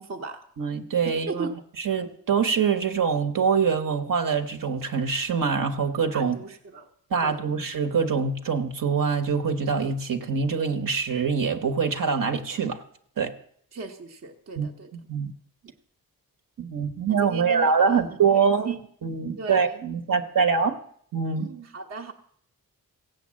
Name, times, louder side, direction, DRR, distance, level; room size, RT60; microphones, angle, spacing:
voice 1, 0.0-0.4 1.3-1.5 6.1-6.9 7.2-7.6 13.7-14.9 17.3-18.0 18.3-18.8 19.4-19.8 21.4-22.1, right 3 dB, 45° right, 3 dB, 1.0 m, -37 dB
voice 2, 0.6-1.5 1.8-6.4 7.1-12.8 13.2-13.3 14.6-15.3 16.6-20.8 21.1-21.5, right 5 dB, 65° right, 9 dB, 1.2 m, -24 dB
16.0 x 8.1 x 7.5 m, 0.64 s
wide cardioid pair, 150°, 36 cm